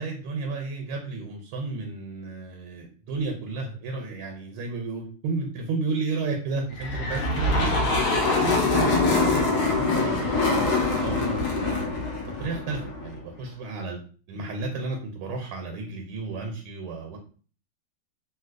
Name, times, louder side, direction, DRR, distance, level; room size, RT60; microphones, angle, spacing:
voice 1, 0.0-7.7 8.4-9.4 9.8-11.8 12.4-14.0 14.3-17.2, right 3 dB, 80° right, 2 dB, 1.4 m, -32 dB
sound 1, 6.8-13.2, left 3 dB, 65° left, 1.0 m, -24 dB
3.3 x 2.7 x 2.4 m, 0.41 s
omnidirectional pair, 2.3 m